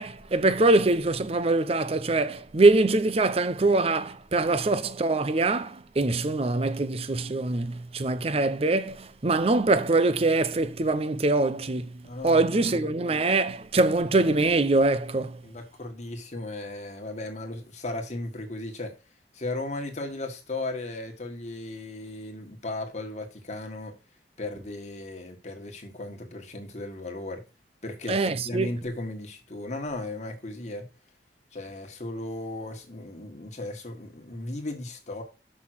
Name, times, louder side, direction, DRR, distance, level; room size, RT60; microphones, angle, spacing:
voice 1, 0.0-11.9 12.2-15.4 28.1-28.7, right 2 dB, 35° right, 0.6 m, -23 dB
voice 2, 12.0-12.8 13.0-13.2 15.4-18.9 19.3-23.9 24.4-27.4 27.8-30.9 31.5-35.2, left 2 dB, 40° left, 1.7 m, -36 dB
6.3 x 5.7 x 6.2 m
head